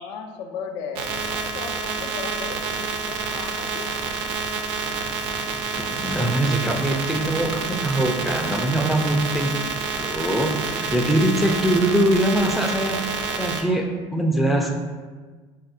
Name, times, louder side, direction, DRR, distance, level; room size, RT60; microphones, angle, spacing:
voice 1, 0.0-3.9, left 5 dB, 75° left, 3 dB, 0.4 m, -36 dB
sound 1, 1.0-13.6, right 5 dB, 70° right, 0.4 m, -28 dB
Bowed string instrument, 4.7-11.4, equal, 90° right, 1.0 m, -47 dB
voice 2, 5.7-9.5 10.0-14.7, right 1 dB, ahead, 1 dB, 0.3 m, -23 dB
4.2 x 2.0 x 2.6 m, 1.4 s
supercardioid pair, 95°, 16 cm